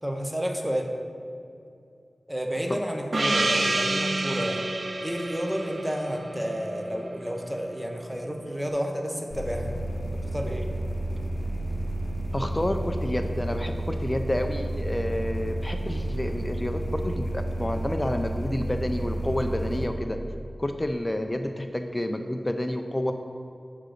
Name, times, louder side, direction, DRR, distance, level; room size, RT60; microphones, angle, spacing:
voice 1, 0.0-0.9 2.3-4.6 5.0-9.7 10.3-10.7, equal, 5° right, 2 dB, 0.8 m, -31 dB
Gong, 3.1-7.5, right 2 dB, 60° right, 0.4 m, -28 dB
sound 1, 9.3-19.9, right 1 dB, 50° left, 0.9 m, -31 dB
voice 2, 12.3-20.2 20.6-23.1, left 1 dB, 25° left, 5 dB, 0.4 m, -29 dB
6.6 x 3.8 x 6.3 m, 2.6 s
wide cardioid pair, 70°, 0 cm